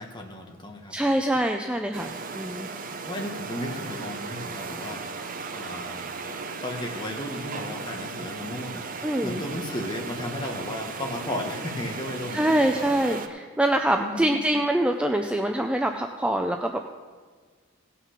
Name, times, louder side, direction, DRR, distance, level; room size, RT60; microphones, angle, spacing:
voice 1, 0.0-0.9 3.1-6.1 6.6-12.5 14.0-14.4, left 1 dB, 20° left, 2 dB, 1.3 m, -34 dB
voice 2, 0.9-2.7 9.0-9.4 12.3-16.8, right 1 dB, 5° right, 4 dB, 0.4 m, -25 dB
sound 1, 1.9-13.3, right 4 dB, 40° right, 0.7 m, -36 dB
16.5 x 5.8 x 5.8 m, 1.5 s
head